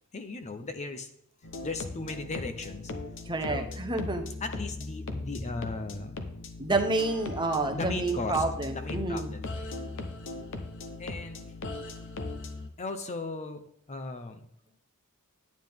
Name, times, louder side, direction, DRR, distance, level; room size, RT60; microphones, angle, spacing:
voice 1, 0.1-1.1 1.6-2.9 3.5-3.7 4.4-6.2 7.6-10.1 11.0-11.5 12.8-14.5, left 3 dB, 30° left, 9 dB, 0.7 m, -37 dB
sound 1, 1.4-12.7, left 2 dB, 60° left, 1.0 m, -38 dB
voice 2, 3.3-4.3 6.6-9.3, right 2 dB, 20° right, 5 dB, 0.9 m, -29 dB
9.5 x 9.4 x 3.6 m, 0.73 s
head